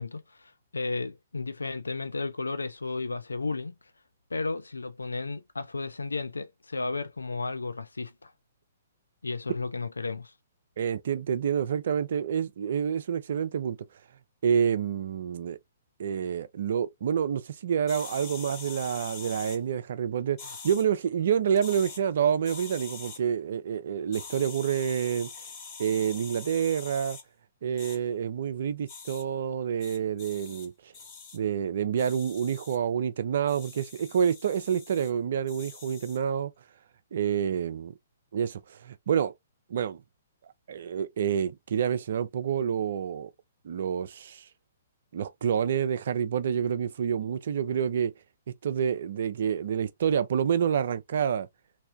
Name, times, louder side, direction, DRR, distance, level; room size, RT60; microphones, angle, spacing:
voice 1, 0.0-3.7 4.3-8.3 9.2-10.3, left 3 dB, 75° left, 0.4 m, -33 dB
voice 2, 10.8-13.8 14.4-15.6 16.0-25.3 25.8-27.2 27.6-30.7 31.3-36.5 37.1-37.9 38.3-39.3 39.7-40.0 40.7-43.3 43.6-44.5 45.1-48.1 48.6-51.5, right 8 dB, 55° right, 0.5 m, -28 dB
sound 1, 17.9-19.6 20.4-20.8 21.5-22.0 22.4-23.2 24.1-27.2 27.8-28.0 28.9-29.2 29.8-30.7 30.9-31.4 32.0-32.8 33.5-35.1 35.5-36.2, left 5 dB, 30° left, 1.6 m, -44 dB
3.3 x 2.7 x 2.5 m
figure-of-eight pair, 120°, 0 cm